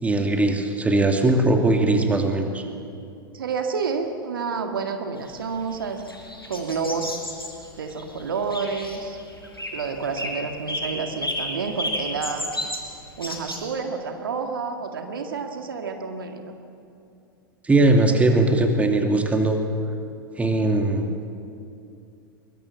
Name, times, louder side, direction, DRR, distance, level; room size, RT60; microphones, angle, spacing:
voice 1, 0.0-2.6 17.6-19.6 20.4-21.2, right 2 dB, 10° right, 4 dB, 2.7 m, -20 dB
voice 2, 3.3-6.0 6.5-7.2 7.8-9.2 9.7-12.5 13.2-16.5, right 5 dB, 70° right, 5 dB, 2.0 m, -29 dB
sound 1, 5.3-13.6, left 1 dB, 90° left, 4.8 m, -32 dB
23.0 x 22.0 x 7.7 m, 2.6 s
figure-of-eight pair, 90°, 12 cm